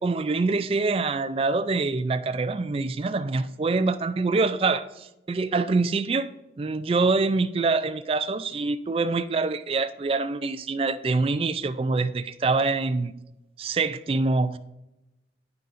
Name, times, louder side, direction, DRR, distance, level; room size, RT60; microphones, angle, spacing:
voice 1, 0.0-6.3 6.6-13.1 13.6-14.6, right 3 dB, 30° right, 11 dB, 0.3 m, -25 dB
9.5 x 9.1 x 2.5 m, 0.94 s
head